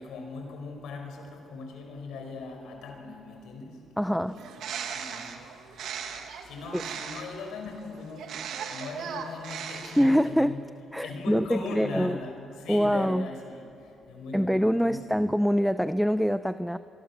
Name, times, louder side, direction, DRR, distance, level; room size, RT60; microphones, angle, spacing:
voice 1, 0.0-6.1 6.4-10.6 11.0-15.3, left 4 dB, 85° left, 5.0 m, -40 dB
voice 2, 4.0-4.4 6.7-6.8 10.0-10.6 10.9-12.2 12.7-13.3 14.3-16.8, equal, ahead, 0.6 m, -24 dB
Bird, 4.3-7.4 8.2-10.3, right 7 dB, 75° right, 2.1 m, -38 dB
26.0 x 23.5 x 7.3 m
cardioid pair, 90°, 0 cm